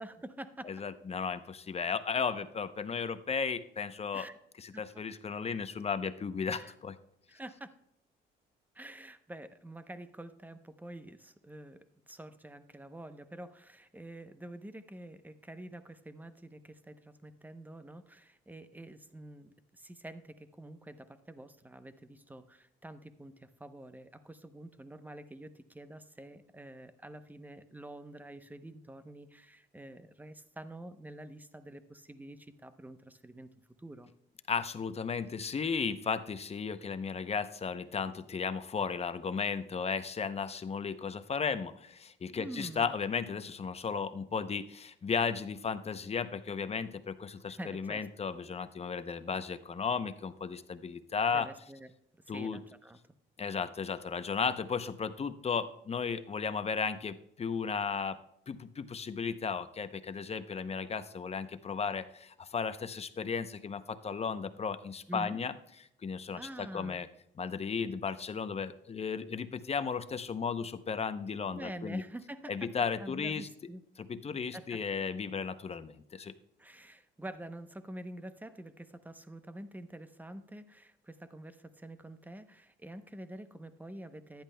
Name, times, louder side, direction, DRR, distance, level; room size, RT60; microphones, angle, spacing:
voice 1, 0.0-0.7 4.1-4.4 4.7-4.8 6.4-6.7 7.3-7.7 8.7-33.5 33.8-34.1 42.4-43.0 47.6-48.1 51.3-51.9 52.2-53.0 65.1-65.4 66.4-67.0 71.5-72.7 73.0-73.8 74.5-74.8 76.6-84.4, right 1 dB, 10° right, 11 dB, 0.7 m, -47 dB
voice 2, 0.6-4.3 4.6-7.0 34.5-51.5 52.3-52.6 53.4-58.2 58.5-65.5 66.0-67.1 67.4-72.0 72.5-73.5 74.0-76.3, left 5 dB, 30° left, 12 dB, 0.6 m, -35 dB
14.5 x 10.5 x 2.2 m, 0.77 s
cardioid pair, 90°, 20 cm